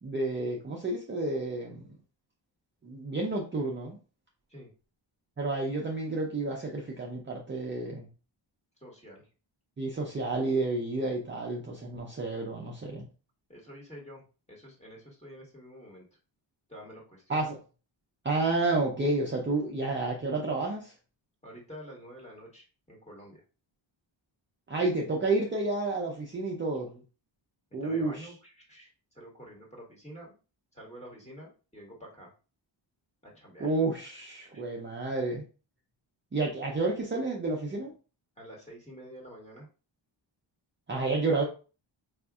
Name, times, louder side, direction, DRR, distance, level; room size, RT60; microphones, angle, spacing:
voice 1, 0.0-1.9 2.8-4.0 5.4-8.1 9.8-13.1 17.3-17.6 18.2-20.9 24.7-26.9 27.7-28.3 33.6-35.4 36.3-37.9 40.9-41.4, right 2 dB, 25° right, 0.5 m, -30 dB
voice 2, 8.8-9.2 13.5-14.2 14.5-16.0 16.7-17.4 21.4-23.4 26.8-27.0 27.8-28.9 29.1-30.4 30.7-32.3 33.2-33.7 34.0-34.1 34.5-34.6 38.4-39.7, equal, 15° left, 1.5 m, -48 dB
4.9 x 2.6 x 2.3 m
wide cardioid pair, 135°, 47 cm